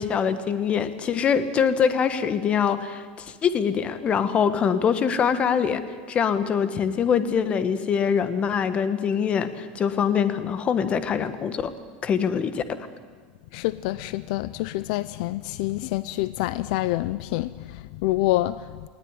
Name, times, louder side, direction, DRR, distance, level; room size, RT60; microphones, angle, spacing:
voice 1, 0.0-5.8 6.1-11.7 12.0-12.8, left 7 dB, 25° left, 1.3 m, -24 dB
voice 2, 13.5-18.9, left 17 dB, 65° left, 0.5 m, -27 dB
20.0 x 17.5 x 9.6 m
supercardioid pair, 155°, 5 cm